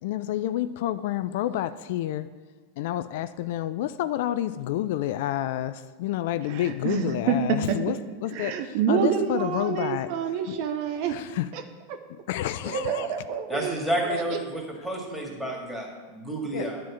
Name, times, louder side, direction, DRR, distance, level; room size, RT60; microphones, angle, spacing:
voice 1, 0.0-2.3 2.8-10.1 10.5-10.6 11.1-11.5 12.1-13.1 16.5-16.7, left 13 dB, 65° left, 13 dB, 0.3 m, -29 dB
voice 2, 6.4-8.0 8.3-11.2 11.5-11.6 11.9-12.0 12.6-14.4, right 7 dB, 55° right, 7 dB, 0.8 m, -28 dB
voice 3, 13.5-16.8, right 1 dB, 5° left, -1 dB, 2.5 m, -30 dB
10.0 x 4.5 x 7.2 m, 1.4 s
hypercardioid pair, 100°, 0 cm